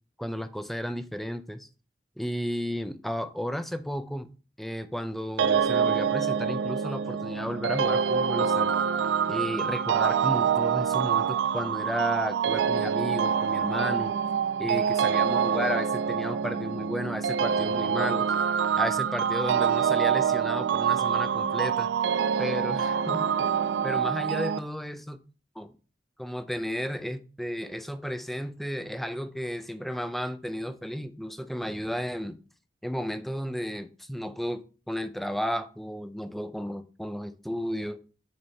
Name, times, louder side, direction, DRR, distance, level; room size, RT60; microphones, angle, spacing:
voice 1, 0.2-1.7 2.2-4.3 4.6-8.7 9.3-14.2 14.6-18.3 18.8-21.9 22.4-23.5 23.8-25.2 25.6-25.7 26.2-32.4 32.8-38.0, equal, ahead, 0.4 m, -33 dB
sound 1, 5.4-24.6, right 7 dB, 85° right, 0.3 m, -26 dB
6.4 x 4.3 x 4.4 m
head